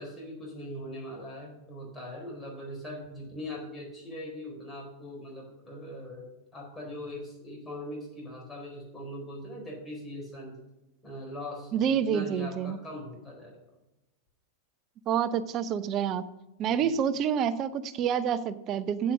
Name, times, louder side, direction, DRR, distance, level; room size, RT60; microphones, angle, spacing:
voice 1, 0.0-10.6 11.0-13.6 16.8-17.0, left 1 dB, 15° left, -1 dB, 4.2 m, -41 dB
voice 2, 11.7-12.8 15.1-16.3 16.6-19.1, right 8 dB, 35° right, 16 dB, 0.6 m, -28 dB
8.3 x 7.6 x 6.2 m, 0.95 s
figure-of-eight pair, 90°, 0 cm